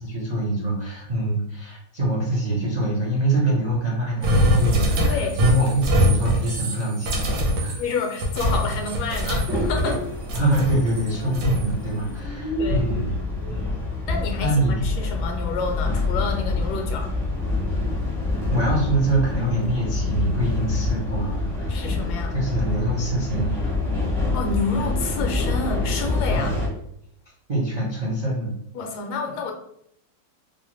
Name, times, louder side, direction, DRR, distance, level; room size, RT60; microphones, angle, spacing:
voice 1, 0.0-7.7 10.3-13.2 13.5-13.7 14.4-14.7 18.5-21.8 22.3-23.5 26.3-26.6 27.5-28.5, right 1 dB, 50° right, -5 dB, 0.5 m, -24 dB
sound 1, 4.2-10.0 10.3-11.7, equal, 80° right, 1.5 m, -23 dB
voice 2, 5.0-5.4 7.8-10.0 12.6-12.9 14.1-17.1 21.7-22.3 24.3-26.5 28.7-29.5, left 4 dB, 75° left, 3 dB, 1.1 m, -29 dB
sound 2, 8.5-26.7, left 2 dB, 5° left, 0.5 m, -27 dB
4.7 x 2.1 x 3.0 m, 0.72 s
omnidirectional pair, 1.9 m